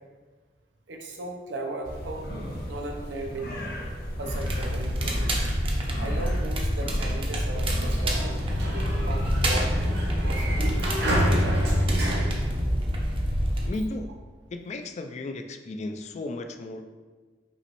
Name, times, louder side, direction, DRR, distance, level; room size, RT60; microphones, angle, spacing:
voice 1, 0.9-2.3 2.6-3.5 4.2-5.3 6.0-8.4 9.0-10.6, right 2 dB, 90° right, 2 dB, 0.7 m, -37 dB
sound 1, 1.8-8.0, equal, 55° left, 0.8 m, -36 dB
Crackle, 4.3-13.7, equal, 30° right, 0.6 m, -27 dB
Sliding door, 7.6-13.3, equal, 65° right, 1.0 m, -28 dB
voice 2, 13.7-14.1 14.5-16.8, left 2 dB, 40° left, 6 dB, 0.3 m, -34 dB
5.4 x 3.0 x 3.0 m, 1.4 s
head